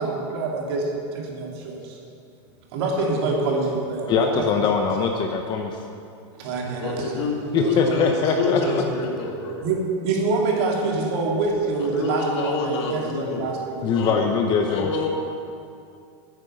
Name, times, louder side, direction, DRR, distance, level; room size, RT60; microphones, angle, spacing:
voice 1, 0.0-2.0 2.7-4.5 6.4-7.2 7.6-8.0 8.4-8.7 9.6-13.9, right 3 dB, 55° right, -1 dB, 2.7 m, -26 dB
voice 2, 4.1-5.8 7.5-8.6 13.8-14.9, left 5 dB, 30° left, 3 dB, 0.8 m, -22 dB
voice 3, 6.8-9.7 11.8-13.5 13.9-14.2 14.6-15.1, left 4 dB, 65° left, 0 dB, 2.3 m, -28 dB
10.5 x 9.7 x 6.9 m, 2.5 s
supercardioid pair, 155°, 16 cm